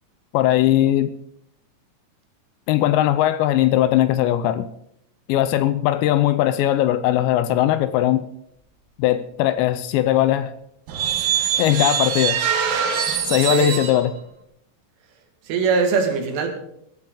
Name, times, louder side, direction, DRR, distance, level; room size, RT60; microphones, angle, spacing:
voice 1, 0.3-1.1 2.7-4.7 5.3-8.2 9.0-10.5 11.4-12.4 13.2-14.1, left 13 dB, 80° left, 12 dB, 2.7 m, -19 dB
sound 1, 10.9-14.0, right 8 dB, 60° right, 2.7 m, -23 dB
voice 2, 15.5-16.5, right 5 dB, 85° right, 4 dB, 4.5 m, -21 dB
16.5 x 14.5 x 3.8 m, 0.74 s
omnidirectional pair, 5.5 m